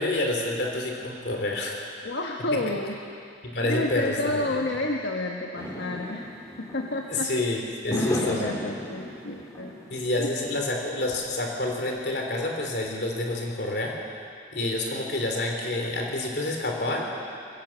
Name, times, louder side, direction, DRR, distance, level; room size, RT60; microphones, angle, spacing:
voice 1, 0.0-1.9 3.4-4.4 7.1-8.5 9.9-14.0 14.5-17.1, left 2 dB, 60° left, 0 dB, 3.5 m, -28 dB
voice 2, 2.0-3.0 3.6-7.3 7.9-9.7 10.2-10.3, left 2 dB, 80° left, 1 dB, 1.3 m, -30 dB
sound 1, 5.5-7.3 7.9-10.2, equal, 15° left, 2.8 m, -34 dB
21.0 x 17.0 x 7.4 m, 2.4 s
head